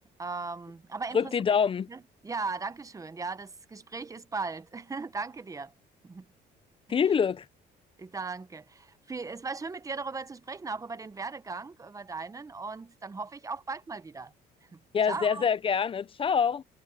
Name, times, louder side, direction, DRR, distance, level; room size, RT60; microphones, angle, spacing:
voice 1, 0.2-1.4 1.9-5.7 6.0-6.2 6.9-7.0 8.0-14.3 14.7-14.8 15.1-15.5, right 4 dB, 20° right, 1.0 m, -37 dB
voice 2, 1.1-1.9 6.9-7.4 14.9-16.6, left 6 dB, 30° left, 0.6 m, -25 dB
cardioid pair, 110°, 17 cm